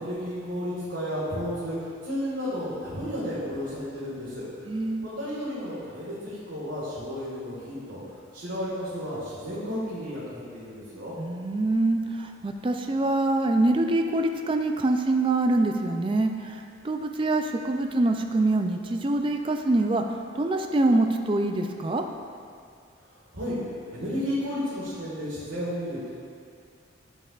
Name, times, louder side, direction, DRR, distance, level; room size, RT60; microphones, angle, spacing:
voice 1, 0.0-4.5 5.0-8.0 8.3-11.1 23.3-23.6 23.9-26.1, equal, 75° right, -10 dB, 1.7 m, -32 dB
voice 2, 4.7-5.1 11.2-22.0, right 2 dB, 25° right, 4 dB, 0.3 m, -25 dB
11.0 x 5.4 x 2.4 m, 2.3 s
head